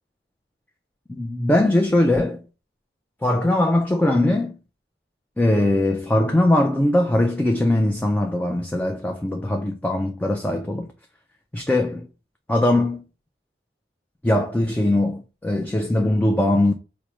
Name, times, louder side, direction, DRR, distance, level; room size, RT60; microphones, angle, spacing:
voice 1, 1.1-2.4 3.2-4.6 5.4-10.9 11.5-12.1 12.5-13.0 14.2-16.7, left 1 dB, 10° left, 0.3 m, -20 dB
4.7 x 2.1 x 3.0 m
head